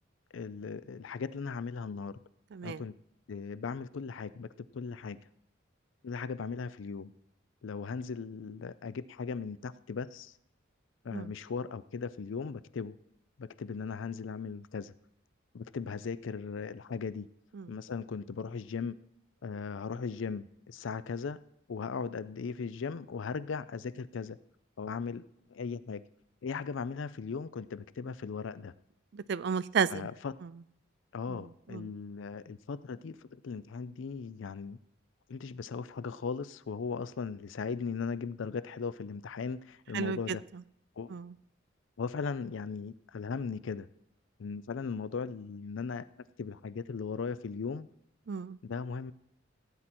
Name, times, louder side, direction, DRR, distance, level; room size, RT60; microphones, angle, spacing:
voice 1, 0.3-2.2 2.6-3.0 3.3-4.5 4.7-5.2 6.0-7.1 7.6-10.3 11.0-12.9 13.4-14.9 15.5-17.3 17.7-19.0 19.4-21.4 21.7-24.4 24.8-25.2 25.5-26.0 26.4-28.7 29.9-30.3 31.1-34.8 35.3-40.4 41.0-41.1 42.0-43.9 44.4-46.1 46.4-47.9 48.6-49.1, left 5 dB, 70° left, 17 dB, 0.4 m, -38 dB
voice 2, 2.5-2.8 11.1-11.3 17.5-17.7 29.1-30.1 31.3-31.4 31.7-31.9 39.9-40.4 41.1-41.3 48.3-48.6, right 6 dB, 55° right, 19 dB, 0.4 m, -32 dB
16.5 x 8.9 x 4.3 m, 0.77 s
head